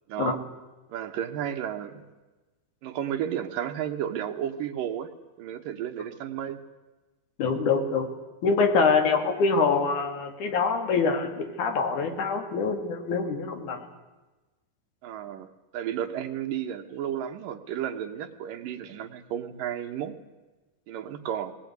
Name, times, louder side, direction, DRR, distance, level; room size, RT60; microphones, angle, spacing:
voice 1, 0.1-0.4 0.9-2.0 2.8-5.1 5.4-6.6 15.0-20.2 20.9-21.5, right 10 dB, 75° right, 6 dB, 2.8 m, -33 dB
voice 2, 7.4-8.1 8.4-13.8, left 4 dB, 60° left, 5 dB, 3.5 m, -25 dB
19.5 x 18.5 x 9.5 m, 1.2 s
omnidirectional pair, 4.1 m